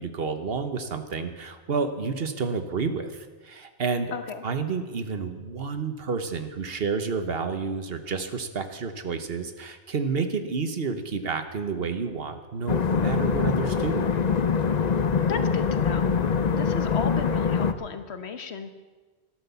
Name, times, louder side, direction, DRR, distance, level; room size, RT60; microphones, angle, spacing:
voice 1, 0.0-4.1 4.4-14.0, right 5 dB, 60° right, 8 dB, 1.3 m, -30 dB
voice 2, 4.1-4.4 15.3-16.1 16.5-18.7, left 6 dB, 75° left, 9 dB, 1.4 m, -34 dB
sound 1, 12.7-17.7, left 6 dB, 45° left, 0.7 m, -24 dB
12.5 x 12.5 x 7.0 m, 1.3 s
omnidirectional pair, 1.1 m